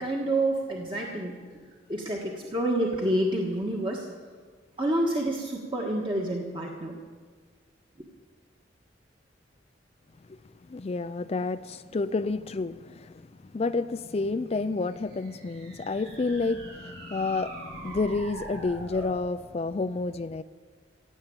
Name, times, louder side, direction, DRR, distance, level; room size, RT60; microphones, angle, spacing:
voice 1, 0.0-1.4 1.9-4.1 4.8-6.9, right 1 dB, 25° right, -1 dB, 1.4 m, -28 dB
voice 2, 10.7-13.3 13.5-20.4, left 3 dB, 35° left, 12 dB, 0.4 m, -30 dB
sound 1, 14.8-19.2, right 1 dB, 60° right, 5.1 m, -43 dB
16.5 x 8.2 x 8.9 m, 1.5 s
head